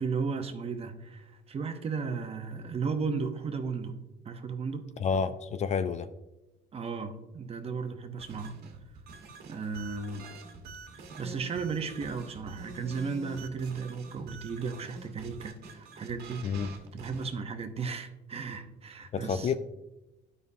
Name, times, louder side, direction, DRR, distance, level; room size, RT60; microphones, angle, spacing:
voice 1, 0.0-4.9 6.7-8.6 9.5-10.3 11.0-16.5 16.9-19.6, right 5 dB, 35° right, 0.8 m, -35 dB
voice 2, 5.0-6.1 16.4-16.7 19.1-19.6, left 6 dB, 40° left, 0.4 m, -29 dB
sound 1, 8.2-17.3, right 4 dB, 70° right, 1.3 m, -46 dB
12.0 x 5.4 x 2.7 m
cardioid pair, 110°, 17 cm